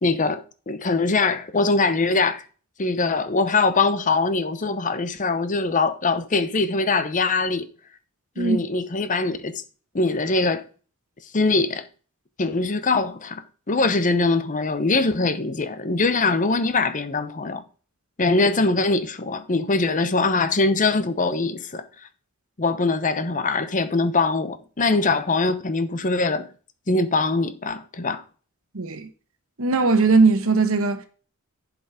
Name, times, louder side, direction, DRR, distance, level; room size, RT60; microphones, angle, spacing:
voice 1, 0.0-2.5 2.8-7.7 8.4-9.6 9.9-10.7 11.3-11.8 12.4-13.4 13.7-17.6 18.2-21.8 22.6-26.5 26.9-28.2, left 3 dB, 35° left, 0.8 m, -22 dB
voice 2, 28.7-29.1 29.6-31.1, right 4 dB, 70° right, 1.2 m, -19 dB
11.0 x 5.0 x 4.9 m
head